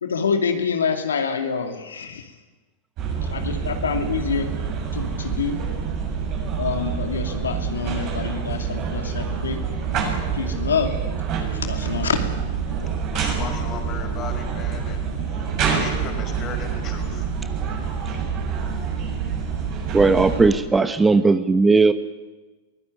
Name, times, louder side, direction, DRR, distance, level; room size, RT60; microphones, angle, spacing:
voice 1, 0.0-2.4 3.2-4.5 4.9-5.6 6.6-9.6 10.3-11.0 11.5-12.3, left 6 dB, 90° left, 4 dB, 2.6 m, -26 dB
sound 1, 3.0-20.5, right 6 dB, 45° right, 7.4 m, -27 dB
voice 2, 13.1-17.3 17.6-17.9, left 6 dB, 35° left, 5 dB, 5.4 m, -37 dB
voice 3, 19.9-21.9, right 3 dB, 15° right, 11 dB, 1.2 m, -17 dB
23.0 x 17.0 x 9.5 m, 1.2 s
hypercardioid pair, 105°, 0 cm